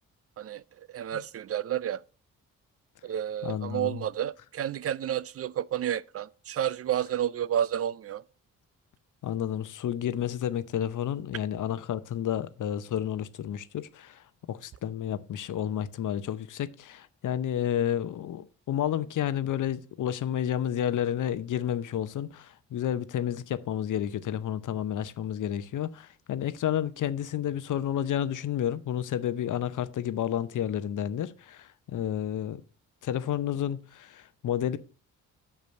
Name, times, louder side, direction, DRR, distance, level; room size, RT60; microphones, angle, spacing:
voice 1, 0.9-2.0 3.0-8.2, right 10 dB, 45° right, 0.4 m, -30 dB
voice 2, 3.4-4.0 9.2-32.6 33.0-34.8, left 10 dB, 65° left, 0.7 m, -31 dB
6.2 x 5.4 x 6.9 m
supercardioid pair, 60°, 33 cm